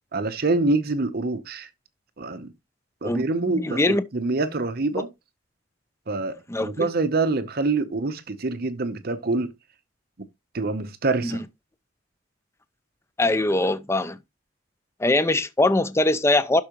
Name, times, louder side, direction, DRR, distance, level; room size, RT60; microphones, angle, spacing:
voice 1, 0.1-1.7 2.2-2.5 3.0-5.1 6.1-9.5 10.5-11.4, right 3 dB, 50° right, 0.8 m, -25 dB
voice 2, 3.0-4.0 6.5-6.9 11.2-11.4 13.2-14.2 15.0-16.6, left 2 dB, 15° left, 0.5 m, -22 dB
12.0 x 4.6 x 2.9 m
head